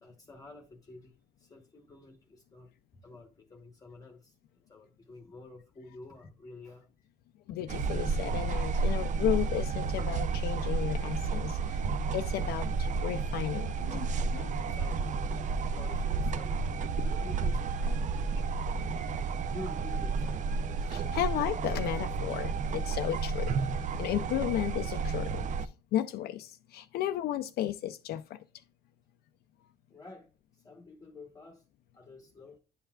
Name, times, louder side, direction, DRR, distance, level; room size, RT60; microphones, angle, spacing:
voice 1, 0.0-2.7 3.0-4.4 4.7-6.9 14.7-16.6 17.0-17.7 18.3-18.5 18.8-20.7 24.0-24.1 29.9-31.6 31.9-32.6, left 2 dB, 20° left, 1.0 m, -50 dB
voice 2, 7.5-11.8 12.1-14.5 17.9-18.0 20.9-23.5 24.0-28.4, left 12 dB, 70° left, 0.4 m, -34 dB
sound 1, 7.7-25.7, right 4 dB, 45° right, 0.5 m, -31 dB
10.0 x 5.5 x 2.3 m
cardioid pair, 110°, 17 cm